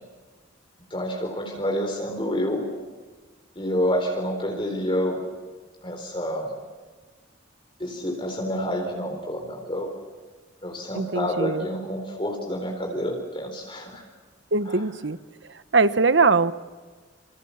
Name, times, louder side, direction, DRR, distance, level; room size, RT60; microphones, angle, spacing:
voice 1, 0.9-2.6 3.6-5.2 5.8-6.5 7.8-9.9 10.6-14.0 14.7-14.8, equal, 25° left, 1 dB, 4.1 m, -28 dB
voice 2, 10.9-11.7 14.5-15.2 15.7-16.5, right 4 dB, 65° right, 14 dB, 1.1 m, -21 dB
28.5 x 27.5 x 7.2 m, 1.4 s
head